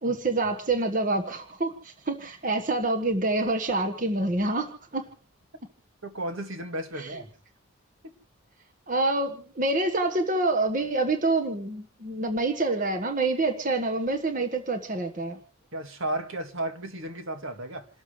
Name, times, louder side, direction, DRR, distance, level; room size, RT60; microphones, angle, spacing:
voice 1, 0.0-5.0 7.0-7.1 8.9-15.4, right 2 dB, 35° right, 5 dB, 1.6 m, -27 dB
voice 2, 6.0-7.3 15.7-17.9, right 1 dB, 65° right, 6 dB, 2.1 m, -34 dB
28.5 x 13.5 x 3.3 m, 0.37 s
head